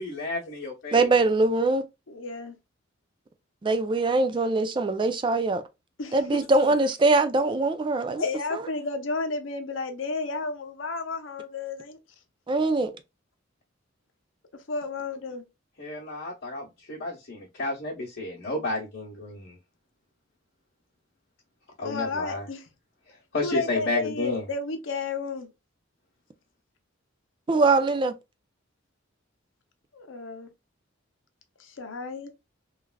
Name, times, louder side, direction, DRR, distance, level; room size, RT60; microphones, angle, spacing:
voice 1, 0.0-1.1 15.8-19.6 21.8-22.4 23.3-24.4, left 2 dB, 65° left, 1.0 m, -31 dB
voice 2, 0.9-1.8 3.6-5.6 6.1-8.3 8.5-8.7 12.5-12.9 27.5-28.1, right 3 dB, 25° right, 0.4 m, -22 dB
voice 3, 2.1-2.5 6.0-6.5 8.2-12.0 14.7-15.5 21.8-22.7 23.4-25.5 29.9-30.5 31.6-32.3, left 3 dB, 80° left, 0.7 m, -32 dB
3.2 x 2.4 x 2.2 m
head